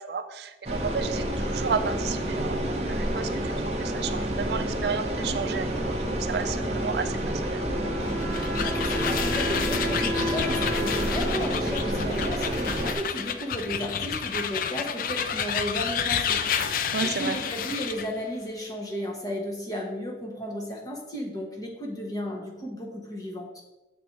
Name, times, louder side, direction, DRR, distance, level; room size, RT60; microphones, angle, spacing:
voice 1, 0.0-3.5 3.8-7.2 7.5-7.6 16.9-17.4, right 6 dB, 65° right, 9 dB, 0.4 m, -32 dB
sound 1, 0.6-12.9, right 1 dB, 35° right, 0.8 m, -29 dB
Wind instrument woodwind instrument, 7.6-13.1, left 1 dB, 5° left, 0.6 m, -35 dB
sound 2, 8.0-18.1, left 7 dB, 50° left, 0.3 m, -30 dB
voice 2, 8.5-16.5 16.8-23.6, equal, 20° left, -1 dB, 1.1 m, -34 dB
6.3 x 4.2 x 4.5 m, 1.1 s
head